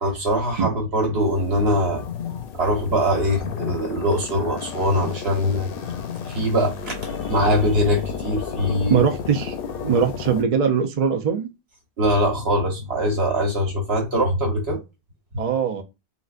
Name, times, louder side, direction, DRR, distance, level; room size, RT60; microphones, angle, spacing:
voice 1, 0.0-2.0 2.5-5.7 6.3-9.0 12.0-14.8 15.3-15.4, equal, 70° right, 1.3 m, -22 dB
sound 1, 1.2-10.4, left 6 dB, 65° left, 0.7 m, -32 dB
voice 2, 8.9-9.5 9.8-11.5 15.4-15.8, right 7 dB, 50° right, 0.5 m, -21 dB
3.9 x 2.1 x 2.4 m
omnidirectional pair, 1.1 m